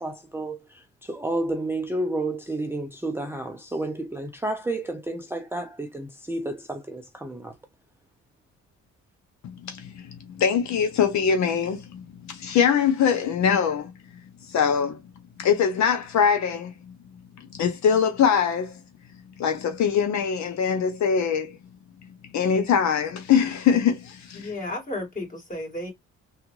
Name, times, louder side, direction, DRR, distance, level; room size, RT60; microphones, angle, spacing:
voice 1, 0.0-7.5, right 2 dB, 10° right, 0.5 m, -31 dB
voice 2, 9.4-13.9 14.5-15.0 15.4-16.9 17.4-18.8 19.4-21.5 22.3-24.5, left 7 dB, 70° left, 0.7 m, -23 dB
voice 3, 24.3-25.9, left 1 dB, 25° left, 2.3 m, -33 dB
3.4 x 2.4 x 3.1 m
cardioid pair, 90°, 30 cm